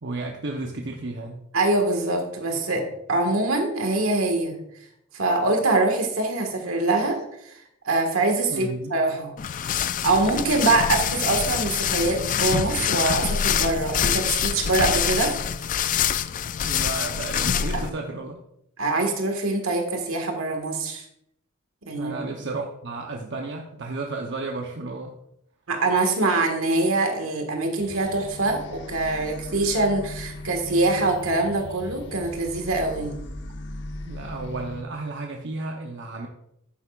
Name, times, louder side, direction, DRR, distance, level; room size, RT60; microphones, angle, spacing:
voice 1, 0.0-1.4 8.5-8.9 16.6-18.4 22.0-25.2 34.0-36.3, right 3 dB, 55° right, 1 dB, 0.8 m, -33 dB
voice 2, 1.5-4.6 5.1-7.2 7.4-7.5 7.9-9.3 10.0-15.4 17.7-17.8 18.8-21.0 21.9-22.1 25.7-33.2, right 2 dB, 75° right, 3 dB, 1.7 m, -24 dB
sound 1, 9.4-17.9, left 8 dB, 40° left, 0.3 m, -25 dB
sine tone sweep mesh, 27.8-34.8, left 1 dB, 55° left, 0.9 m, -38 dB
10.5 x 9.1 x 2.4 m, 0.77 s
head